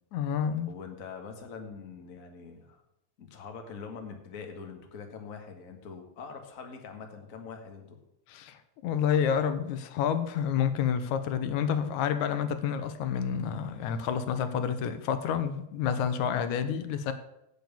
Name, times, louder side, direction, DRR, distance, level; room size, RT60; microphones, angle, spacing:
voice 1, 0.1-0.7 8.3-17.1, left 8 dB, 85° left, 2.3 m, -29 dB
voice 2, 0.7-2.8 3.2-8.0, left 5 dB, 35° left, 1.4 m, -43 dB
9.0 x 8.1 x 7.0 m
omnidirectional pair, 3.3 m